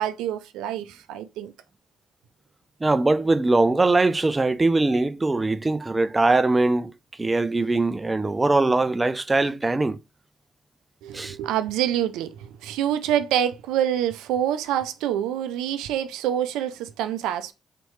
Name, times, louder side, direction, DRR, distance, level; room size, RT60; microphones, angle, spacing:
voice 1, 0.0-1.5 11.0-17.5, right 10 dB, 80° right, 0.4 m, -26 dB
voice 2, 2.8-6.9 7.2-10.0 11.1-11.4, right 2 dB, 20° right, 0.4 m, -21 dB
4.1 x 3.1 x 3.1 m
supercardioid pair, 55°, 0 cm